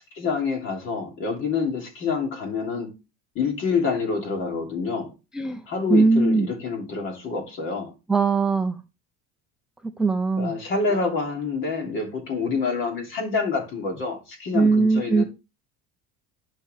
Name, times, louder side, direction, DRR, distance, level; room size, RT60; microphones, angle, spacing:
voice 1, 0.2-2.9 3.3-5.1 5.7-7.9 10.4-15.2, left 4 dB, 45° left, 2.9 m, -27 dB
voice 2, 5.9-6.5 8.1-8.8 9.8-10.5 14.5-15.2, right 4 dB, ahead, 0.4 m, -20 dB
11.5 x 4.6 x 3.3 m
cardioid pair, 165°, 30 cm